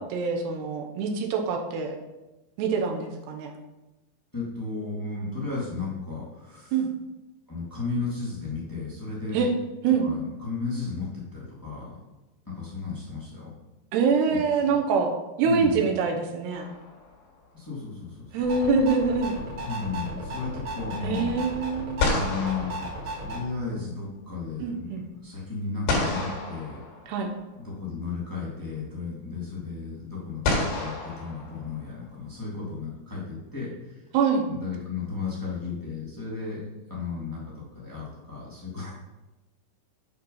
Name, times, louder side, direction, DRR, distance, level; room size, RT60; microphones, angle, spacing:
voice 1, 0.1-2.0 2.6-3.5 6.7-6.9 9.3-9.5 9.8-10.1 13.9-16.7 18.3-19.3 21.0-22.0 24.6-25.0 27.1-27.3 34.1-34.5, right 5 dB, 80° right, 3 dB, 2.9 m, -25 dB
voice 2, 4.3-6.7 7.5-9.5 10.0-11.9 12.4-13.5 14.3-14.8 15.4-15.8 17.5-18.3 19.6-21.4 22.0-24.9 25.2-26.8 27.6-34.0 34.5-36.6 36.9-38.9, left 4 dB, 15° left, -6 dB, 0.6 m, -34 dB
sound 1, 16.5-17.4 21.5-21.6 22.0-23.7 25.9-27.5 28.8-28.9 30.4-32.1, left 2 dB, 85° left, 4.5 m, -30 dB
sound 2, 18.4-23.4, right 1 dB, 50° right, 2.7 m, -35 dB
8.7 x 5.3 x 5.5 m, 1.0 s
omnidirectional pair, 4.9 m